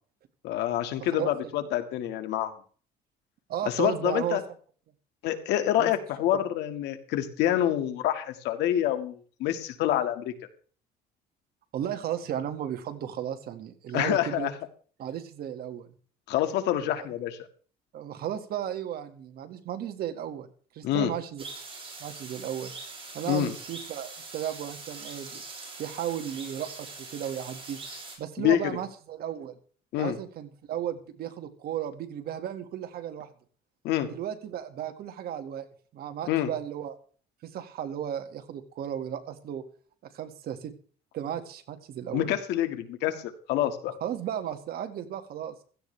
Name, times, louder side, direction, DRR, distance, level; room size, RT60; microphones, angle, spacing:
voice 1, 0.4-2.5 3.6-4.4 5.2-10.3 13.9-14.5 16.3-17.4 20.8-21.1 23.3-23.5 28.4-28.7 29.9-30.2 33.8-34.1 36.3-36.5 42.1-43.9, left 12 dB, 85° left, 8 dB, 1.9 m, -27 dB
voice 2, 3.5-4.4 5.8-5.9 6.3-6.4 11.7-14.5 15.0-15.9 17.0-17.1 17.9-20.5 20.7-21.4 22.0-22.7 23.1-25.4 25.8-27.8 28.2-29.6 30.0-33.3 34.1-35.7 35.9-37.0 37.4-39.6 40.1-40.7 41.1-42.3 44.0-45.5, right 10 dB, 65° right, 7 dB, 2.0 m, -34 dB
sound 1, 21.4-28.2, right 3 dB, 35° right, 7.2 m, -43 dB
16.0 x 14.0 x 3.4 m, 0.43 s
cardioid pair, 110°, 17 cm